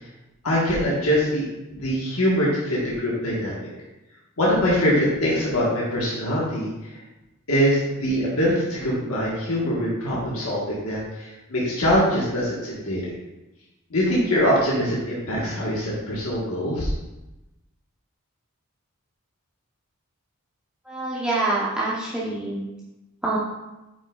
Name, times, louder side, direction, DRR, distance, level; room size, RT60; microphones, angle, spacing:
voice 1, 0.4-3.7 4.4-6.7 7.5-13.1 13.9-16.9, equal, 75° left, -6 dB, 1.5 m, -23 dB
voice 2, 20.8-22.6 23.2-23.4, right 2 dB, 5° right, -8 dB, 1.0 m, -25 dB
8.8 x 5.5 x 2.4 m, 1.0 s
head